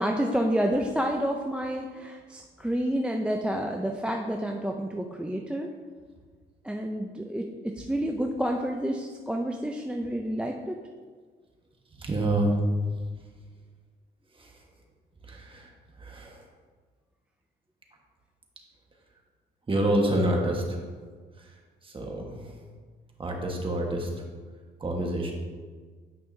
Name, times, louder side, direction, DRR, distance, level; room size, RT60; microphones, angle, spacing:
voice 1, 0.0-5.7 6.6-10.8, equal, 5° right, 1 dB, 0.5 m, -29 dB
voice 2, 12.0-12.6 14.4-14.5 15.3-15.7 16.0-16.4 19.7-20.8 21.8-22.5 23.2-24.1 24.8-25.3, right 1 dB, 25° right, 0 dB, 1.4 m, -27 dB
9.5 x 5.4 x 2.7 m, 1.5 s
cardioid pair, 90°, 20 cm